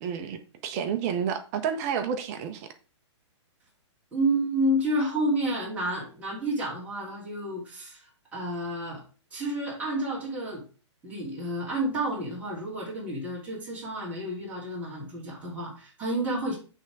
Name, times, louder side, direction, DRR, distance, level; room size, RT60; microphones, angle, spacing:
voice 1, 0.0-2.7, right 7 dB, 30° right, 0.8 m, -30 dB
voice 2, 4.1-9.0 9.3-10.6 11.0-16.5, right 1 dB, 10° right, 2.6 m, -30 dB
8.2 x 3.6 x 4.7 m
hypercardioid pair, 150°, 15 cm